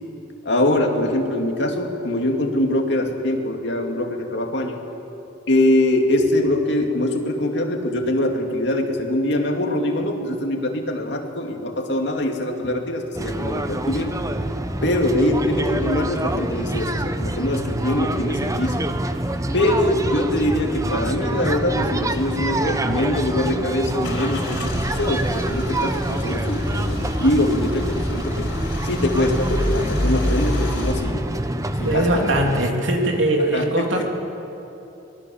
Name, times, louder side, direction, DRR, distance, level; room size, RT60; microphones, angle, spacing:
voice 1, 0.4-4.8 5.5-14.1 14.8-18.8 19.5-28.5 28.8-31.2 31.8-32.3 33.4-34.0, left 1 dB, 65° left, 2 dB, 2.5 m, -23 dB
sound 1, 13.1-32.7, right 1 dB, 20° right, 0.9 m, -26 dB
Car / Engine starting / Idling, 24.0-30.9, left 1 dB, 85° left, 4.3 m, -28 dB
voice 2, 31.8-34.0, right 1 dB, 85° right, 1 dB, 3.1 m, -21 dB
24.5 x 19.0 x 7.2 m, 3.0 s
head